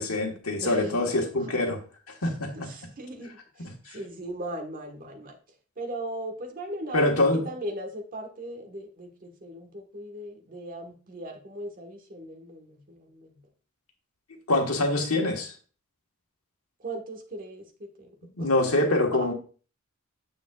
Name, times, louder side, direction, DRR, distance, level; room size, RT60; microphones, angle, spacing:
voice 1, 0.0-1.8 2.1-2.7 3.6-4.0 6.9-7.5 14.5-15.5 18.4-19.3, left 2 dB, 85° left, 1.4 m, -25 dB
voice 2, 0.6-1.5 2.5-5.4 5.8-13.4 16.8-18.1 18.4-18.5 19.1-19.3, right 1 dB, 40° right, 1.3 m, -38 dB
7.2 x 7.0 x 2.3 m
head